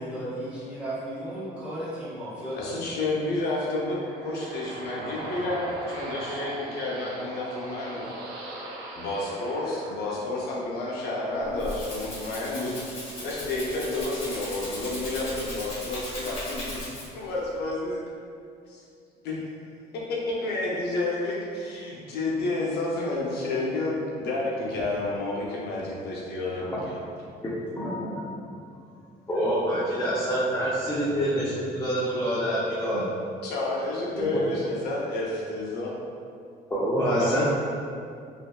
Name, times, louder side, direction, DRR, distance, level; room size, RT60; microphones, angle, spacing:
voice 1, 0.0-2.9, right 1 dB, 5° right, -11 dB, 1.2 m, -35 dB
voice 2, 2.6-8.0 8.9-12.9 13.2-16.8 17.1-18.0 18.7-18.8 19.2-19.4 19.9-27.0 33.4-35.9 37.2-37.4, left 2 dB, 75° left, -4 dB, 0.6 m, -30 dB
sound 1, 3.2-10.8, right 1 dB, 85° right, 0.5 m, -39 dB
Rattle (instrument), 11.3-17.3, left 1 dB, 35° left, 1.0 m, -37 dB
voice 3, 27.4-28.2 29.3-33.0 34.2-34.3 36.7-37.4, equal, 15° left, -9 dB, 0.5 m, -26 dB
2.8 x 2.6 x 2.2 m, 2.4 s
cardioid pair, 110°, 17 cm